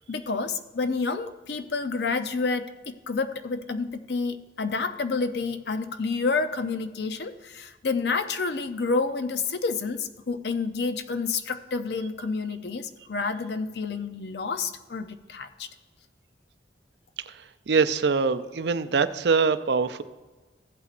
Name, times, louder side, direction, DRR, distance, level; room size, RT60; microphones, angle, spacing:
voice 1, 0.0-15.7, left 4 dB, 70° left, 10 dB, 0.6 m, -29 dB
voice 2, 17.3-20.0, right 5 dB, 70° right, 12 dB, 0.4 m, -24 dB
15.0 x 8.2 x 2.5 m, 1.3 s
head